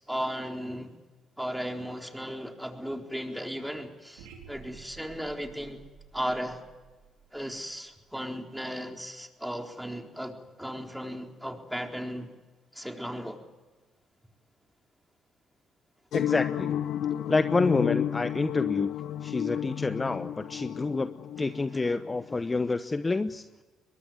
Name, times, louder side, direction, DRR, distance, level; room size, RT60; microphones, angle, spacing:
voice 1, 0.1-0.9 1.4-5.8 6.1-6.6 7.3-12.3 12.7-13.4, equal, 5° right, 3 dB, 4.1 m, -36 dB
sound 1, 4.2-8.3, right 6 dB, 80° right, 4.5 m, -52 dB
sound 2, 16.1-22.3, left 10 dB, 65° left, 1.2 m, -31 dB
voice 2, 16.1-16.7 17.3-18.9 19.2-21.1 21.4-23.4, left 3 dB, 25° left, 11 dB, 1.0 m, -28 dB
23.0 x 21.5 x 9.6 m, 1.2 s
hypercardioid pair, 50°, 0 cm